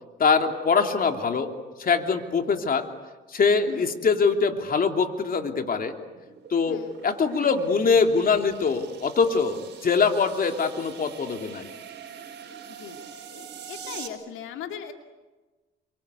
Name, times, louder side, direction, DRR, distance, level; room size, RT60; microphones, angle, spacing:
voice 1, 0.2-1.5 1.8-2.9 3.3-5.9 6.5-11.7, left 5 dB, 45° left, 5 dB, 3.1 m, -23 dB
sound 1, 6.1-14.1, right 7 dB, 60° right, 4.9 m, -44 dB
voice 2, 6.7-7.0 12.7-13.0 13.7-14.9, left 8 dB, 90° left, 5 dB, 2.5 m, -38 dB
29.0 x 25.0 x 8.3 m, 1.2 s
cardioid pair, 90°, 20 cm